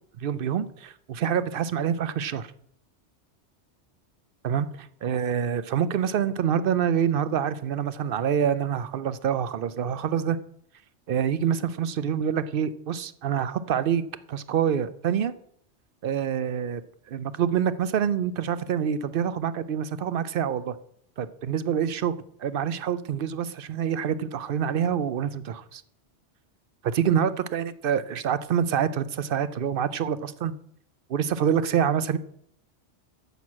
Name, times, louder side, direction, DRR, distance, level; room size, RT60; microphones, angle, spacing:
voice 1, 0.2-2.5 4.4-10.4 11.1-14.0 14.3-15.3 16.0-16.8 17.1-20.8 21.2-25.8 26.8-30.6 31.1-32.2, right 8 dB, 60° right, 15 dB, 0.6 m, -26 dB
9.3 x 6.1 x 7.2 m, 0.70 s
omnidirectional pair, 1.2 m